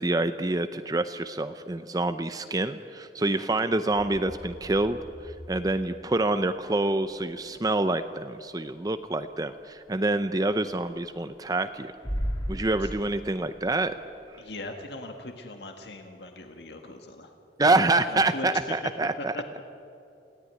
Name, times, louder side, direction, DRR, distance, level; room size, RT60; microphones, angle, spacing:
voice 1, 0.0-11.9 12.5-14.0 17.6-19.3, right 2 dB, 20° right, 10 dB, 0.6 m, -27 dB
voice 2, 3.2-3.5 12.8-12.9 14.4-17.3 18.1-18.9 19.2-19.4, left 2 dB, 70° left, 4 dB, 1.7 m, -39 dB
sound 1, 3.9-14.4, equal, 25° left, 3.2 m, -40 dB
27.5 x 17.0 x 9.5 m, 2.7 s
head